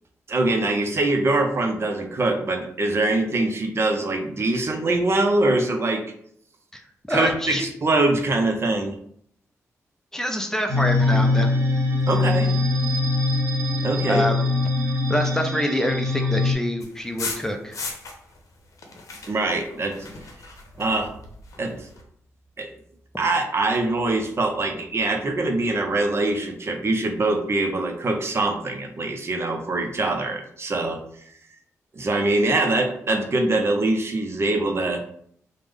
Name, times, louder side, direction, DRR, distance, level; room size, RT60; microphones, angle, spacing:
voice 1, 0.3-6.0 7.1-8.9 12.1-12.5 13.8-14.2 19.3-20.0 20.8-21.1 21.6-21.9 22.6-22.7 23.2-31.0 31.9-35.0, right 2 dB, 50° right, 4 dB, 0.6 m, -23 dB
voice 2, 6.7-7.7 10.1-11.6 14.1-14.5 14.8-17.8, equal, 10° left, 4 dB, 0.5 m, -26 dB
sound 1, 10.7-16.5, left 3 dB, 90° right, 0.7 m, -22 dB
sound 2, 16.8-18.4 18.7-22.0, left 3 dB, 70° left, 0.7 m, -37 dB
3.4 x 2.1 x 3.4 m, 0.66 s
cardioid pair, 65°, 6 cm